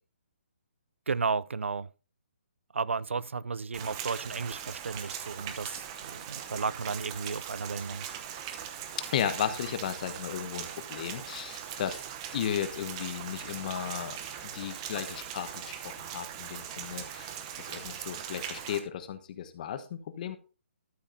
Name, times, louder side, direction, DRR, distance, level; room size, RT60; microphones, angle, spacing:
voice 1, 1.1-1.9 2.7-8.1, right 5 dB, 85° right, 0.4 m, -33 dB
Rain, 3.7-18.8, right 9 dB, 25° right, 0.9 m, -40 dB
voice 2, 9.0-12.0 12.3-20.4, left 9 dB, 40° left, 1.2 m, -35 dB
12.5 x 7.2 x 2.7 m
hypercardioid pair, 150°, 7 cm